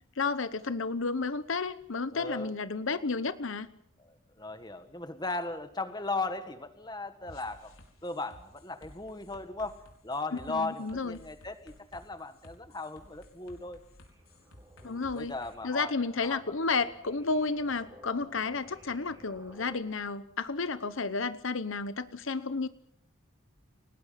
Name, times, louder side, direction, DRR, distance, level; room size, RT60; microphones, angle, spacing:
voice 1, 0.2-3.7 10.5-11.2 14.8-15.3 15.6-22.7, left 4 dB, 70° left, 13 dB, 0.9 m, -32 dB
voice 2, 2.1-2.5 4.0-7.7 8.0-13.8 14.8-16.4, left 3 dB, 20° left, 9 dB, 1.7 m, -37 dB
sound 1, 7.3-15.5, left 1 dB, 90° left, 4.9 m, -55 dB
sound 2, 14.0-19.8, right 1 dB, 20° right, 7.1 m, -56 dB
29.5 x 19.0 x 5.8 m, 0.70 s
head